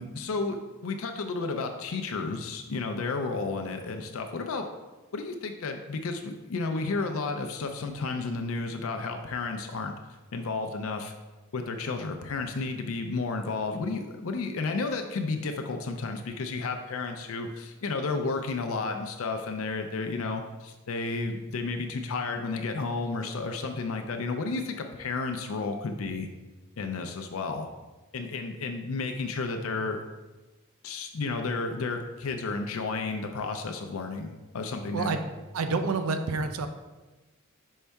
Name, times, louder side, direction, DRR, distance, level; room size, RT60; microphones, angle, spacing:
voice 1, 0.0-4.7 5.1-9.9 10.3-11.1 11.5-26.3 26.8-27.7 28.1-30.0 30.8-35.2, left 3 dB, 70° left, 5 dB, 0.5 m, -32 dB
voice 2, 34.9-35.2 35.5-36.7, right 4 dB, 85° right, 8 dB, 0.5 m, -28 dB
5.5 x 5.3 x 3.4 m, 1.2 s
head